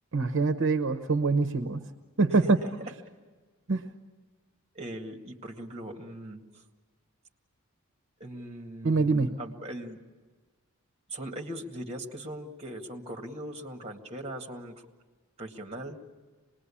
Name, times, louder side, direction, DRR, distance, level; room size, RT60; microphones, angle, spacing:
voice 1, 0.1-1.9 2.2-2.6 3.7-3.9 8.8-9.3, right 3 dB, 60° right, 8 dB, 0.9 m, -24 dB
voice 2, 4.7-6.4 8.2-10.0 11.1-14.8 15.4-16.0, right 1 dB, 30° right, 3 dB, 2.0 m, -40 dB
26.0 x 20.5 x 8.6 m, 1.4 s
head